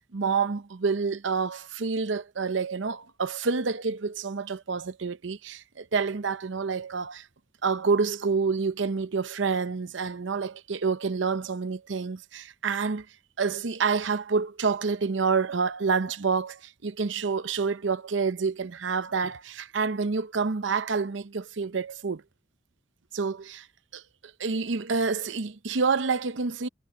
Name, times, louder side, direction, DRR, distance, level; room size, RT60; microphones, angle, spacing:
voice 1, 0.1-7.3 7.6-13.1 13.4-22.2 23.1-23.7 23.9-24.0 24.4-26.7, right 5 dB, 70° right, 0.7 m, -28 dB
head